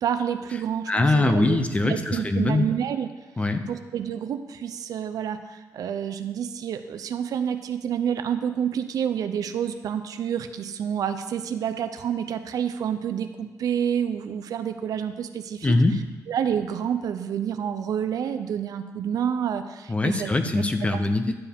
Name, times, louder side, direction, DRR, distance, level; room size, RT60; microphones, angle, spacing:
voice 1, 0.0-3.1 3.7-15.8 16.3-20.3 20.6-20.7 20.9-21.0, right 8 dB, 70° right, 9 dB, 0.6 m, -28 dB
voice 2, 0.9-2.6 3.4-3.7 15.6-16.1 19.9-21.3, left 2 dB, 20° left, 8 dB, 0.6 m, -22 dB
11.0 x 6.9 x 3.6 m, 1.2 s
cardioid pair, 130°, 6 cm